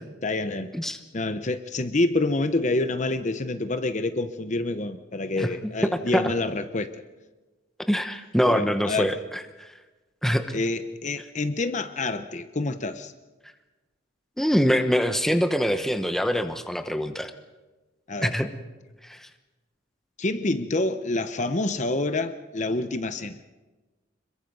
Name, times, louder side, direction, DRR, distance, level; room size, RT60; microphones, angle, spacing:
voice 1, 0.2-0.7 1.1-7.0 8.4-9.2 10.5-13.1 18.1-18.4 20.2-23.4, left 2 dB, 35° left, 9 dB, 0.8 m, -27 dB
voice 2, 7.9-9.1 9.6-9.7 10.2-10.6 14.4-17.3 18.2-18.5 19.1-19.2, equal, ahead, 7 dB, 1.0 m, -24 dB
26.5 x 22.0 x 5.4 m, 1.2 s
head